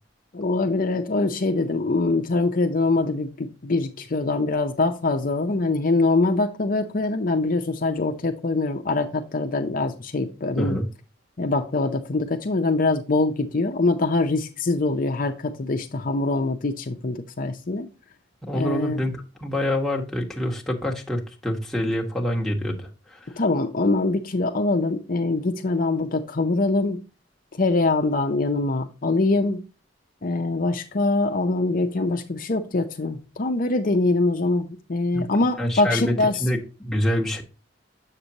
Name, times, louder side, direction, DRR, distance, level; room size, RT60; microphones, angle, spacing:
voice 1, 0.3-10.8 11.4-17.9 18.5-19.0 23.4-27.0 27.6-29.6 30.2-36.4, left 2 dB, 50° left, 0.6 m, -23 dB
voice 2, 18.5-23.4 35.1-35.2 35.6-36.1 36.4-37.4, equal, ahead, 1.3 m, -26 dB
7.3 x 6.7 x 2.9 m
head